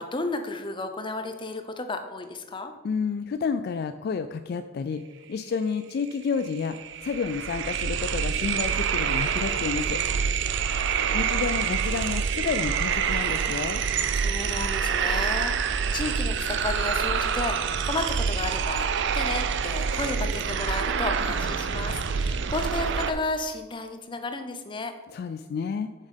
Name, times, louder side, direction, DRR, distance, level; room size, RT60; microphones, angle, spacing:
voice 1, 0.0-2.7 14.1-18.9 19.1-24.9, left 2 dB, 25° left, 7 dB, 0.7 m, -32 dB
voice 2, 2.8-10.0 11.1-13.8 25.1-25.9, left 5 dB, 50° left, 9 dB, 0.3 m, -30 dB
sound 1, 6.1-6.2 6.4-23.1, right 6 dB, 60° right, 0.5 m, -27 dB
7.1 x 5.5 x 5.4 m, 1.2 s
head